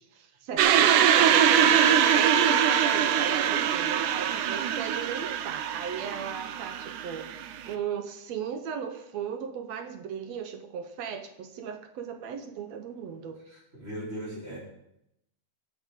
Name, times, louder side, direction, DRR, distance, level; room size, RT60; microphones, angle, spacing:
voice 1, 0.0-13.4, right 7 dB, 70° right, 6 dB, 1.9 m, -37 dB
sound 1, 0.6-7.7, right 9 dB, 85° right, 2.2 m, -23 dB
voice 2, 13.8-14.6, equal, 20° right, -7 dB, 4.5 m, -37 dB
15.5 x 7.3 x 5.2 m, 0.82 s
omnidirectional pair, 3.5 m